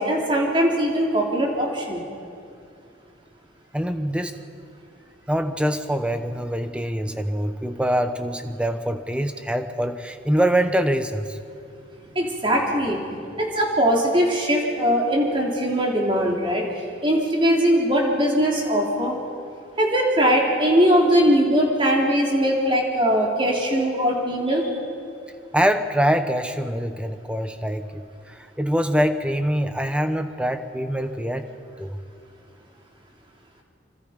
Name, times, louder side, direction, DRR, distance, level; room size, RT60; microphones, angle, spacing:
voice 1, 0.0-2.0 12.1-13.0 13.4-16.6 17.0-19.2 19.8-24.7, equal, 30° right, -1 dB, 3.4 m, -20 dB
voice 2, 3.7-4.4 5.3-11.4 25.5-31.5 31.8-32.0, equal, 5° right, 8 dB, 1.0 m, -24 dB
26.5 x 24.0 x 5.2 m, 2.5 s
head